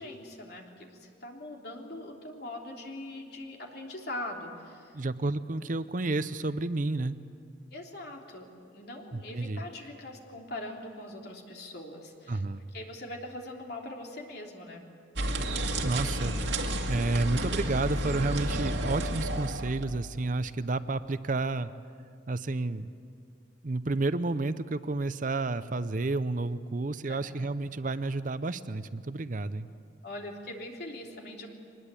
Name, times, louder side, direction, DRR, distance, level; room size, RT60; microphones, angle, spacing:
voice 1, 0.0-5.0 7.7-12.4 12.7-14.8 27.0-27.5 30.0-31.5, left 1 dB, 60° left, 0 dB, 3.3 m, -42 dB
voice 2, 4.9-7.1 9.1-9.6 12.3-12.6 15.8-16.3 16.9-21.7 22.3-22.9 23.6-29.7, right 2 dB, 45° right, 13 dB, 0.6 m, -30 dB
sound 1, 15.2-19.8, right 1 dB, 85° right, 2.1 m, -31 dB
23.5 x 20.5 x 8.4 m, 2.3 s
head